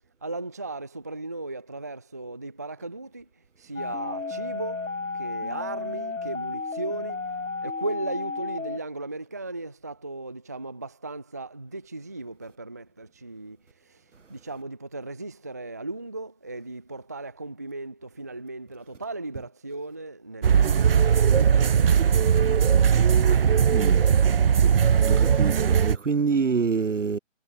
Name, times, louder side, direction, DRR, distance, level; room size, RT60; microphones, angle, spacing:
voice 1, 0.2-3.2 3.7-4.8 5.2-7.2 7.6-13.6 14.3-22.6, right 2 dB, 15° right, 0.5 m, -36 dB
sound 1, 3.8-8.8, left 3 dB, 80° left, 3.3 m, -33 dB
sound 2, 20.4-26.0, right 7 dB, 45° right, 0.9 m, -19 dB
voice 2, 23.2-24.2 25.0-27.2, right 5 dB, 65° right, 2.3 m, -27 dB
figure-of-eight pair, 145°, 39 cm